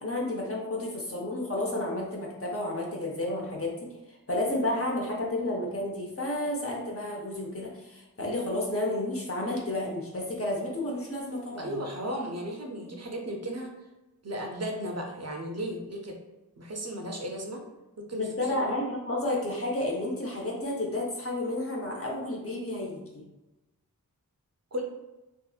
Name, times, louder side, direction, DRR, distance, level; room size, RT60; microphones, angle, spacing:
voice 1, 0.0-3.7 4.1-11.8 18.1-23.2, left 1 dB, 40° left, -2 dB, 0.7 m, -31 dB
voice 2, 11.6-13.7 14.2-16.2 16.6-17.6 18.0-18.5 24.7-24.8, equal, 45° right, 1 dB, 0.5 m, -35 dB
2.7 x 2.4 x 2.4 m, 1.0 s
wide cardioid pair, 50°, 36 cm